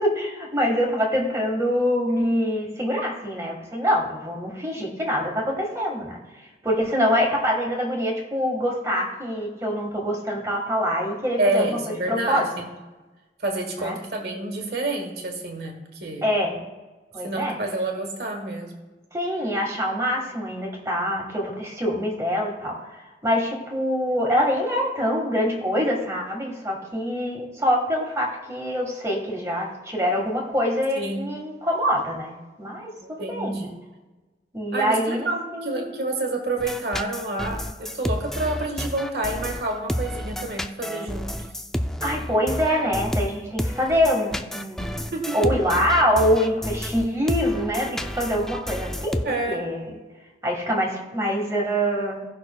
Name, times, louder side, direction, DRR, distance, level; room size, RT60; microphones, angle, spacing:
voice 1, 0.0-6.2 6.6-12.5 13.8-14.0 16.2-16.6 17.1-17.6 19.1-33.7 34.5-35.3 35.5-36.0 42.0-49.2 49.5-49.9 50.4-52.2, equal, 15° right, 0 dB, 1.5 m, -25 dB
voice 2, 11.4-12.7 13.4-15.7 16.0-16.3 17.2-18.7 31.0-31.4 33.0-33.7 34.7-41.4 45.0-45.5 49.2-49.7, right 2 dB, 60° right, 1 dB, 1.5 m, -28 dB
sound 1, 36.6-49.2, equal, 5° left, 0.3 m, -30 dB
17.5 x 5.9 x 2.2 m, 1.2 s
head